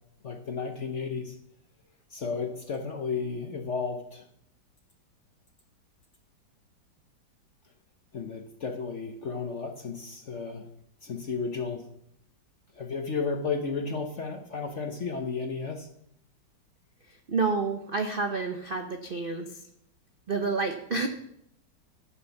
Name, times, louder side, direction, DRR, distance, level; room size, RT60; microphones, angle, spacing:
voice 1, 0.2-1.4 2.1-4.2 8.1-10.7 11.0-11.8 12.7-15.9, left 5 dB, 50° left, 4 dB, 0.9 m, -33 dB
voice 2, 17.3-19.6 20.3-21.1, right 4 dB, 50° right, 4 dB, 0.6 m, -29 dB
13.5 x 6.1 x 5.8 m, 0.73 s
omnidirectional pair, 2.1 m